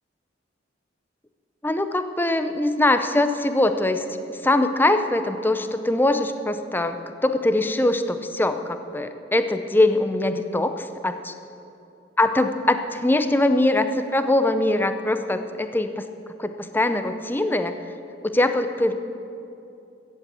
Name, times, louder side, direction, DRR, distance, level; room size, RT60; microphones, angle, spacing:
voice 1, 1.6-4.0 4.4-7.0 7.2-11.3 12.2-16.0 16.4-17.7 18.2-18.9, left 1 dB, 10° left, 9 dB, 0.5 m, -22 dB
14.0 x 8.1 x 8.5 m, 2.8 s
head